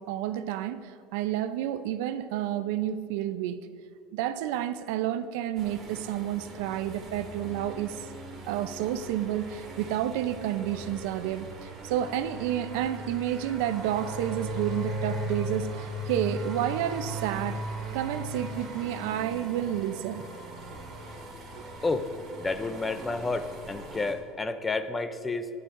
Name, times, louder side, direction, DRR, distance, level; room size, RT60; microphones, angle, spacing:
voice 1, 0.0-3.6 4.1-8.0 8.5-17.6 17.9-20.2 21.5-21.6, right 11 dB, 80° right, 12 dB, 0.5 m, -30 dB
sound 1, 5.5-24.1, right 1 dB, 30° right, 2.0 m, -39 dB
voice 2, 22.4-25.5, left 3 dB, 15° left, 10 dB, 0.4 m, -30 dB
15.5 x 11.0 x 2.6 m, 2.6 s
cardioid pair, 160°, 0 cm